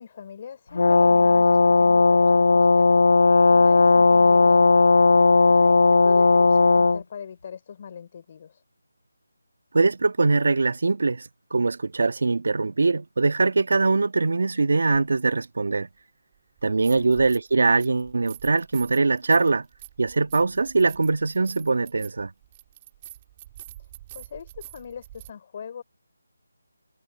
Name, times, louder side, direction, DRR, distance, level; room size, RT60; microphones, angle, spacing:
voice 1, 0.0-4.7 5.5-8.6 16.9-17.3 23.8-25.8, left 7 dB, 30° left, 4.2 m, -41 dB
Brass instrument, 0.7-7.0, left 3 dB, 70° left, 1.0 m, -16 dB
voice 2, 9.7-15.9 16.6-19.7 20.0-22.3, right 3 dB, 60° right, 1.9 m, -22 dB
sound 1, 16.6-17.5 17.8-25.3, right 14 dB, 20° right, 5.3 m, -46 dB
figure-of-eight pair, 170°, 0 cm